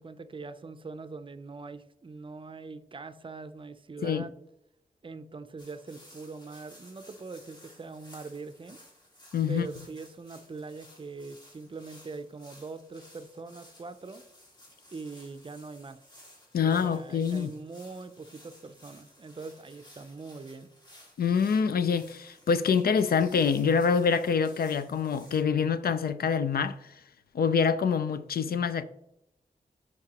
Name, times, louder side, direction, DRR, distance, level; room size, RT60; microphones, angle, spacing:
voice 1, 0.0-4.4 5.0-8.8 9.5-14.2 14.9-16.0 16.6-20.7, right 4 dB, 35° right, 0.5 m, -42 dB
sound 1, 5.6-25.4, left 1 dB, 30° left, 2.0 m, -56 dB
voice 2, 9.3-9.7 16.5-17.5 21.2-26.9 27.3-28.8, left 6 dB, 85° left, 0.5 m, -26 dB
10.5 x 4.7 x 2.9 m
wide cardioid pair, 140°, 15 cm